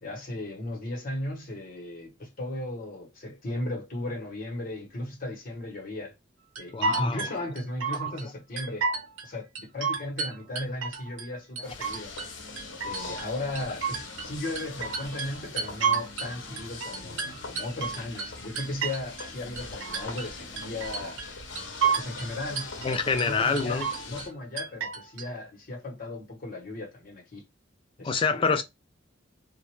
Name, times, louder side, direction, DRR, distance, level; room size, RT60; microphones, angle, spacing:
voice 1, 0.0-6.1 6.6-8.9 9.2-12.1 12.8-21.2 22.0-22.7 23.1-27.4 28.0-28.6, left 1 dB, 50° left, 1.1 m, -36 dB
sound 1, 6.6-8.2 8.6-9.3 9.6-11.3 11.6-12.3 12.6-16.3 16.6-19.3 19.6-20.3 20.6-21.3 21.6-22.3 22.6-23.3 23.6-24.3 24.6-25.3, right 5 dB, 80° right, 0.7 m, -31 dB
voice 2, 6.7-7.2 22.8-23.9 28.0-28.6, left 4 dB, 25° left, 0.3 m, -26 dB
sound 2, 11.6-24.3, left 3 dB, 75° left, 0.7 m, -41 dB
2.4 x 2.1 x 2.9 m
head